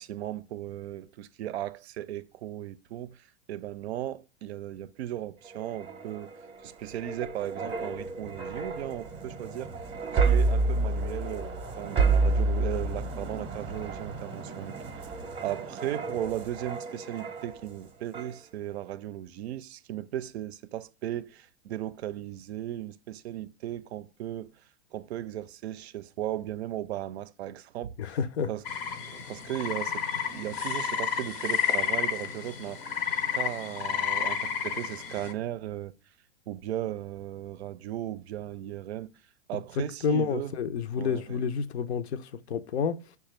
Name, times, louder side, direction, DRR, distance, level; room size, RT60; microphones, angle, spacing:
voice 1, 0.0-6.4 6.6-9.7 10.1-15.1 15.4-24.5 24.9-28.2 28.5-28.6 29.0-32.9 33.3-35.9 36.5-39.1 39.5-40.5 41.0-41.2, right 12 dB, 80° right, 0.5 m, -36 dB
sound 1, 5.4-17.8 18.1-18.4, right 3 dB, 15° right, 0.6 m, -30 dB
voice 2, 28.0-28.5 39.5-43.2, left 6 dB, 85° left, 0.6 m, -30 dB
sound 2, 28.7-35.3, left 7 dB, 25° left, 0.5 m, -31 dB
5.6 x 2.3 x 3.0 m
hypercardioid pair, 135°, 32 cm